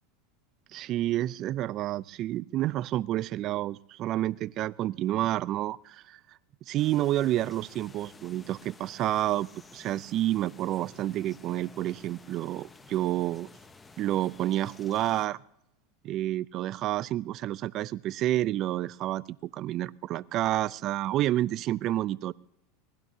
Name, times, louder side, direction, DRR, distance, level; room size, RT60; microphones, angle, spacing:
voice 1, 0.7-6.2 6.7-13.5 14.0-15.4 16.0-22.3, right 14 dB, 45° right, 0.4 m, -29 dB
sound 1, 6.8-15.3, left 3 dB, 15° left, 1.0 m, -53 dB
23.5 x 18.5 x 2.8 m
hypercardioid pair, 100°, 0 cm